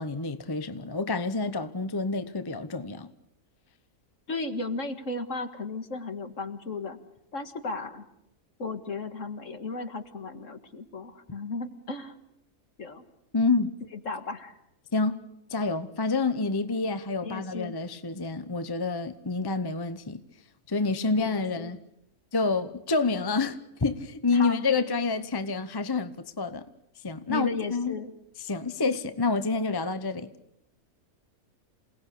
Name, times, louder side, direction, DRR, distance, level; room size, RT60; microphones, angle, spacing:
voice 1, 0.0-3.1 13.3-13.7 14.9-20.2 20.7-21.8 22.3-26.6 27.0-28.0 28.4-30.3, left 3 dB, 20° left, 0.8 m, -28 dB
voice 2, 4.3-7.0 7.3-8.1 8.6-12.1 12.8-13.0 14.1-14.5 16.7-16.8 17.2-17.8 21.2-21.7 24.3-24.6 27.3-28.1, left 3 dB, 55° left, 2.2 m, -35 dB
28.0 x 19.0 x 8.4 m
omnidirectional pair, 1.6 m